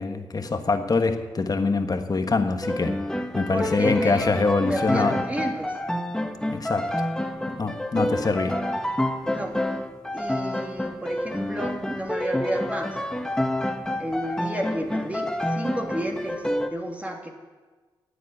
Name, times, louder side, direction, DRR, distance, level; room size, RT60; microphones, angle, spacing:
voice 1, 0.0-3.0 3.3-5.2 6.5-6.9 7.5-8.6, left 4 dB, 40° left, 7 dB, 1.5 m, -24 dB
sound 1, 2.6-16.7, left 1 dB, 5° left, 1.2 m, -28 dB
voice 2, 3.5-4.3 4.7-5.7 9.3-9.6 10.1-13.0 14.0-16.4 16.7-17.3, equal, 15° right, 1 dB, 2.5 m, -31 dB
9.8 x 9.0 x 8.8 m, 1.4 s
supercardioid pair, 50°, 9 cm